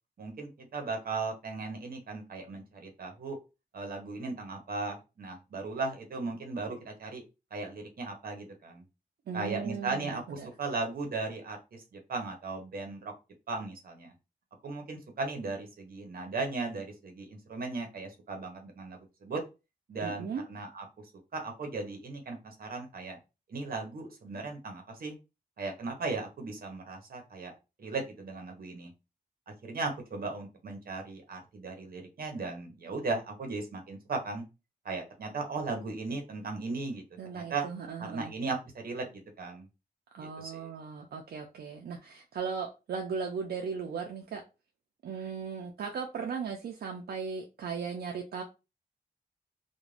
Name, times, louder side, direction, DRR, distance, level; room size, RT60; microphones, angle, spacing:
voice 1, 0.2-3.4 3.7-7.2 7.5-8.8 9.3-13.1 13.5-14.1 14.6-19.4 19.9-20.8 21.3-23.2 23.5-25.1 25.6-27.5 27.8-28.9 29.6-34.4 34.8-37.0 37.3-37.7 38.0-39.7 40.2-40.7, right 3 dB, 70° right, 0.8 m, -37 dB
voice 2, 9.3-10.5 20.0-20.4 37.2-38.4 40.1-44.4 45.0-48.4, right 6 dB, 90° right, 0.4 m, -37 dB
2.4 x 2.2 x 3.2 m
wide cardioid pair, 90°, 16 cm